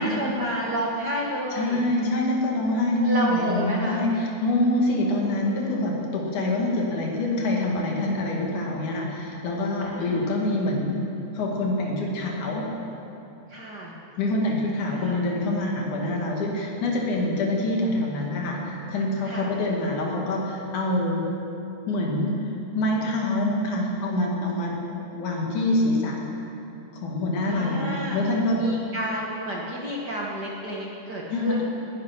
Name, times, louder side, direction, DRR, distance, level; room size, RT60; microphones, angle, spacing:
voice 1, 0.0-1.8 3.0-4.0 9.8-10.3 13.5-13.9 14.9-15.2 19.2-19.5 27.4-28.2 28.5-31.6, right 1 dB, 50° right, -3 dB, 1.4 m, -30 dB
voice 2, 1.5-11.0 11.3-12.7 14.2-21.3 21.9-22.4 22.8-24.8 25.1-26.2 26.9-28.6 31.3-31.6, left 1 dB, 80° left, -1 dB, 3.5 m, -25 dB
19.0 x 10.0 x 5.8 m, 2.9 s
omnidirectional pair, 3.4 m